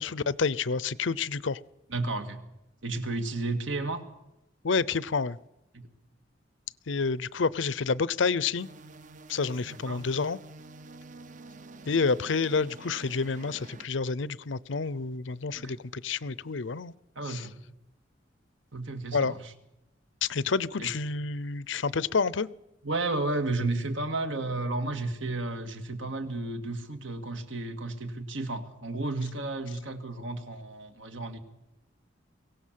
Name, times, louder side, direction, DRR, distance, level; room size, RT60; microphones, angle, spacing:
voice 1, 0.0-1.6 4.6-5.4 6.9-8.7 9.3-10.4 11.9-16.9 17.3-17.4 19.1-19.3 20.2-22.5, left 4 dB, 75° left, 0.7 m, -29 dB
voice 2, 1.9-2.4 2.8-4.0 5.7-5.8 9.7-10.0 15.5-15.8 17.2-17.5 18.7-19.5 20.8-20.9 22.8-31.4, right 2 dB, 80° right, 2.3 m, -32 dB
sound 1, 8.6-13.9, right 3 dB, 40° right, 0.7 m, -48 dB
23.5 x 17.0 x 7.6 m
head